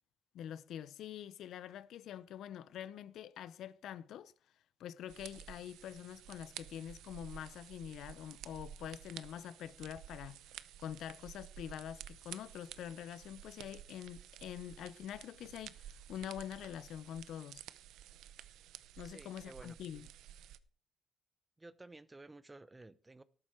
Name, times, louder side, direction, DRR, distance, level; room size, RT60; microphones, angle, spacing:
voice 1, 0.3-4.3 4.8-17.6 19.0-20.1, left 10 dB, 75° left, 0.7 m, -46 dB
sound 1, 5.1-20.6, right 11 dB, 85° right, 0.7 m, -52 dB
voice 2, 19.0-19.8 21.6-23.2, right 2 dB, 20° right, 0.9 m, -54 dB
13.5 x 11.5 x 4.5 m
cardioid pair, 90°, 0 cm